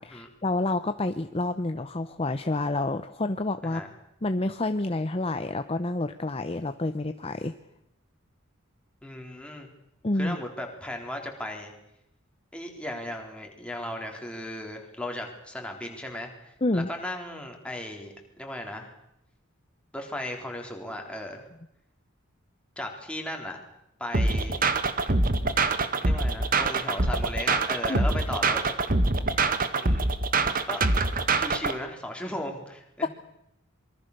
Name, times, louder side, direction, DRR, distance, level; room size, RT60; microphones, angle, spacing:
voice 1, 0.0-3.8 4.2-7.5 10.0-10.4 16.6-16.9 27.9-28.1, left 2 dB, 30° left, 9 dB, 0.8 m, -28 dB
voice 2, 9.0-9.7 10.2-11.7 12.5-18.9 19.9-21.4 22.8-23.6 24.0-24.6 26.0-28.6 29.7-30.2 30.7-30.8 31.4-33.1, left 1 dB, 5° left, 2 dB, 4.0 m, -36 dB
sound 1, 24.1-31.8, right 3 dB, 45° right, 1.6 m, -24 dB
25.5 x 23.0 x 6.8 m, 0.82 s
head